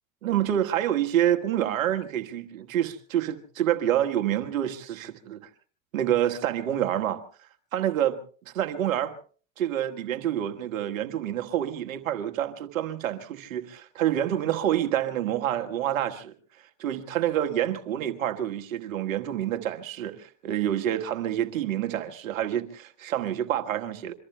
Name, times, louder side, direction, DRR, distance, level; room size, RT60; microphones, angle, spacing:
voice 1, 0.2-5.4 5.9-7.2 7.7-8.2 8.4-9.1 9.6-16.3 16.8-24.1, right 11 dB, 85° right, 1.5 m, -27 dB
27.0 x 24.0 x 2.2 m
hypercardioid pair, 85°, 39 cm